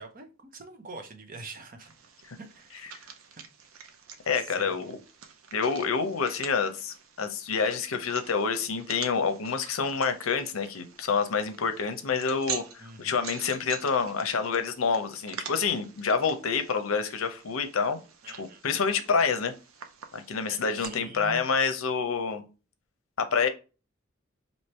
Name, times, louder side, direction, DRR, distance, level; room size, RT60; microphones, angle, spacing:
voice 1, 0.0-1.9 2.4-3.1 4.3-4.9 12.8-13.2 18.2-18.6 20.5-21.5, right 3 dB, 40° right, 6 dB, 0.7 m, -45 dB
sound 1, 1.8-20.8, right 7 dB, 85° right, 0.6 m, -46 dB
voice 2, 4.3-5.0 5.5-18.0 18.4-19.5 20.1-22.5 23.2-23.5, left 5 dB, 85° left, 9 dB, 0.6 m, -28 dB
3.2 x 2.7 x 4.3 m, 0.32 s
head